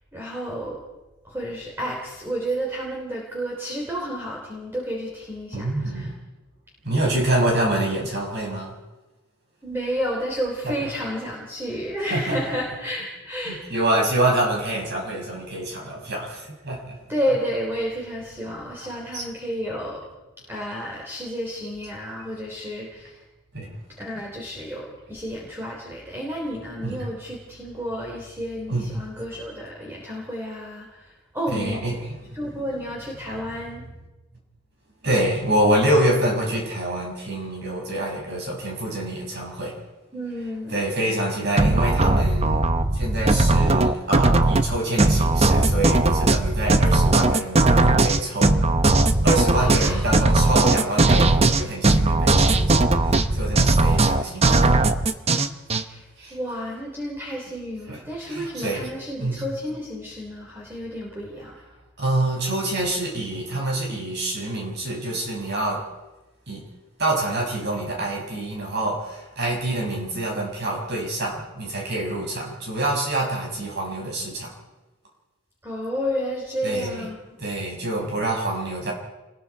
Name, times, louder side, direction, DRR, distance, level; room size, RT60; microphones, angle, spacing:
voice 1, 0.1-0.8 1.2-6.1 9.6-13.6 17.1-20.1 20.5-23.2 24.0-31.8 32.3-33.8 40.1-40.8 49.5-50.0 55.8-56.0 56.3-61.5 75.6-77.2, equal, 10° right, -3 dB, 3.5 m, -31 dB
voice 2, 5.5-6.1 6.8-8.7 10.6-10.7 12.1-12.6 13.5-17.0 19.1-19.2 23.5-23.7 26.8-27.0 28.7-28.9 31.5-32.4 35.0-39.8 40.7-42.6 42.9-48.6 49.2-54.8 56.2-56.4 57.9-58.0 58.2-58.9 59.2-59.4 62.0-65.8 66.5-66.7 67.0-74.5 76.6-77.1 77.4-78.9, right 1 dB, 55° right, -1 dB, 6.4 m, -26 dB
sound 1, 41.6-55.8, right 2 dB, 30° right, 0.9 m, -18 dB
28.0 x 20.5 x 4.8 m, 1.1 s
head